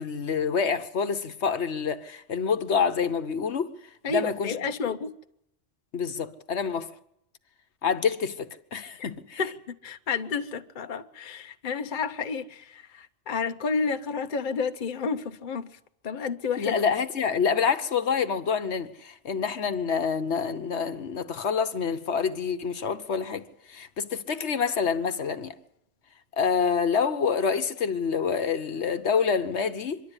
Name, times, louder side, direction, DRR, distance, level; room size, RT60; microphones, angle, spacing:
voice 1, 0.0-3.7 4.1-4.5 5.9-6.9 7.8-9.4 16.6-25.5 26.4-30.0, left 6 dB, 70° left, 1.3 m, -27 dB
voice 2, 4.0-5.1 9.0-9.1 9.4-15.8 16.0-16.8, left 5 dB, 45° left, 1.0 m, -31 dB
24.5 x 12.0 x 9.8 m
omnidirectional pair, 1.2 m